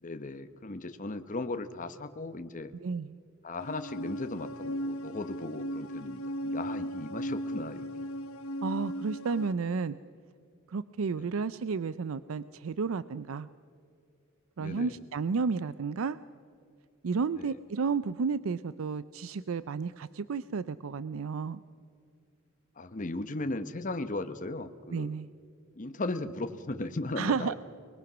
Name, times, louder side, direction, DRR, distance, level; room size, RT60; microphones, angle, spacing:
voice 1, 0.0-2.7 3.4-7.9 11.2-11.3 14.6-14.9 17.3-17.5 22.8-25.1 25.8-27.5, left 2 dB, 40° left, 9 dB, 0.9 m, -37 dB
voice 2, 2.8-3.2 8.6-10.0 10.7-13.5 14.6-16.2 17.0-21.6 24.9-25.3 27.2-27.5, right 5 dB, 75° right, 15 dB, 0.5 m, -32 dB
sound 1, 3.6-9.5, equal, 90° left, 1.0 m, -36 dB
29.0 x 21.0 x 6.1 m, 2.3 s
head